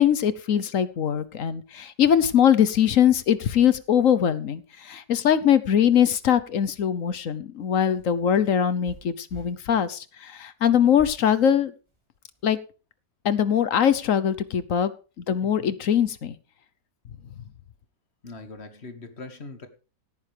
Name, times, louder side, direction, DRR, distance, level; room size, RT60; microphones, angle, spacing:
voice 1, 0.0-11.7 12.4-12.6 13.2-14.9 15.2-16.4, left 9 dB, 60° left, 14 dB, 1.2 m, -22 dB
sound 1, 7.6-9.5 10.9-11.2 11.9-12.5, right 2 dB, 15° right, 3.4 m, -46 dB
voice 2, 15.4-15.7 18.2-19.7, left 3 dB, 40° left, 8 dB, 2.1 m, -41 dB
17.0 x 9.5 x 3.4 m, 0.35 s
omnidirectional pair, 1.7 m